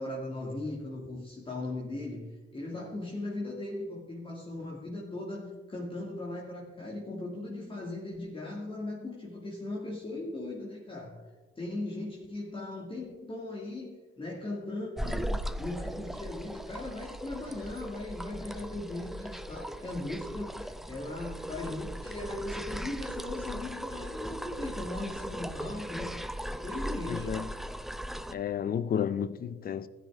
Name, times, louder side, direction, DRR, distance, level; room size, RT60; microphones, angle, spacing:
voice 1, 0.0-11.3 11.6-26.2 26.6-27.4, left 2 dB, 25° left, 2.1 m, -38 dB
sound 1, 15.0-28.3, equal, ahead, 0.5 m, -38 dB
voice 2, 27.1-27.5 28.3-29.9, left 8 dB, 50° left, 0.6 m, -32 dB
14.5 x 9.3 x 3.6 m
cardioid pair, 90°, 20 cm